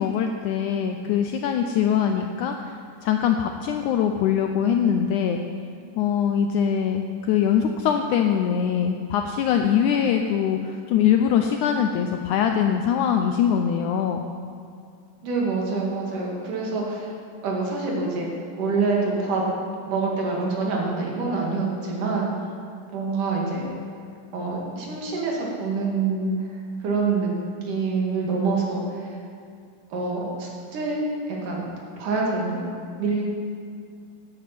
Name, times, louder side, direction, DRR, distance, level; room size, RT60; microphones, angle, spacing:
voice 1, 0.0-2.8 3.0-5.4 6.0-14.2, left 8 dB, 80° left, 5 dB, 1.8 m, -22 dB
voice 2, 15.2-17.1 17.4-18.3 18.6-19.5 19.8-22.3 22.9-23.7 24.3-26.5 26.8-27.3 27.6-29.1 29.9-31.0 31.3-31.6 32.0-32.6 33.0-33.2, right 4 dB, 65° right, -2 dB, 3.6 m, -26 dB
14.5 x 9.3 x 6.0 m, 2.3 s
omnidirectional pair, 4.0 m